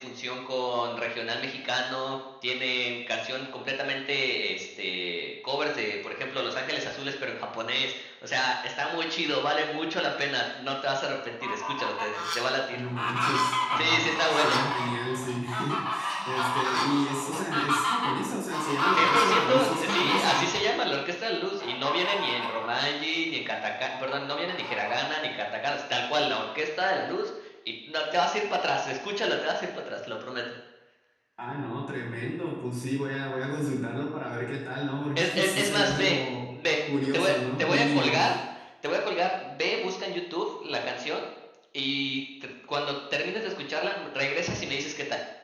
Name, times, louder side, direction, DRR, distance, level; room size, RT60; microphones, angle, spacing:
voice 1, 0.0-12.8 13.8-14.6 18.9-30.6 35.2-36.2 36.5-38.4 38.8-41.3 41.7-45.2, equal, 10° right, 0 dB, 1.1 m, -29 dB
Fowl, 11.3-12.4 12.8-20.6 21.6-22.7 23.1-23.2 23.6-25.3, left 1 dB, 35° left, 0.9 m, -29 dB
voice 2, 12.7-20.5 31.4-36.5 36.9-38.3, equal, 10° left, -4 dB, 1.6 m, -32 dB
5.9 x 5.5 x 3.4 m, 1.0 s
wide cardioid pair, 45°, 0 cm